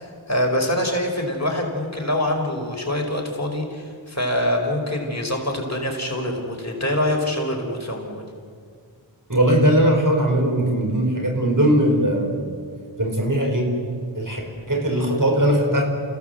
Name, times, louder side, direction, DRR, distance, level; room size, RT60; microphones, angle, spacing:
voice 1, 0.0-8.2, left 1 dB, 35° left, 1 dB, 4.9 m, -25 dB
voice 2, 9.3-12.4 13.0-13.7 14.1-14.4 14.7-15.8, right 1 dB, 40° right, 1 dB, 5.3 m, -19 dB
29.0 x 16.5 x 8.0 m, 2.1 s
wide cardioid pair, 45°, 47 cm